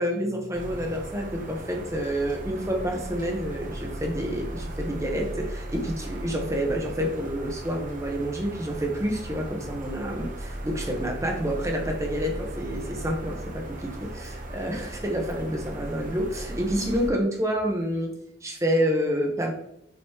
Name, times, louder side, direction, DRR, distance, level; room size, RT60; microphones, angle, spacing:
voice 1, 0.0-18.1 18.4-19.5, equal, 15° right, 1 dB, 1.1 m, -28 dB
sound 1, 0.5-17.1, right 1 dB, 45° right, 1.0 m, -37 dB
7.9 x 4.1 x 3.0 m, 0.77 s
head